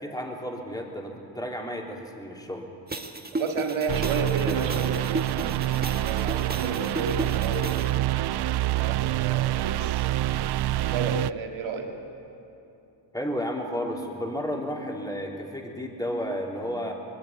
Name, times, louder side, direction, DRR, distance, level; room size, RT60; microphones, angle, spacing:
voice 1, 0.0-2.7 13.1-16.9, equal, 10° left, 0 dB, 3.8 m, -32 dB
sound 1, 2.9-7.9, right 2 dB, 20° right, 1.6 m, -34 dB
voice 2, 3.4-10.0 10.8-11.9, right 4 dB, 80° right, 2 dB, 2.5 m, -33 dB
sound 2, 3.9-11.3, right 14 dB, 60° right, 0.5 m, -26 dB
20.5 x 14.5 x 9.7 m, 2.8 s
cardioid pair, 70°, 46 cm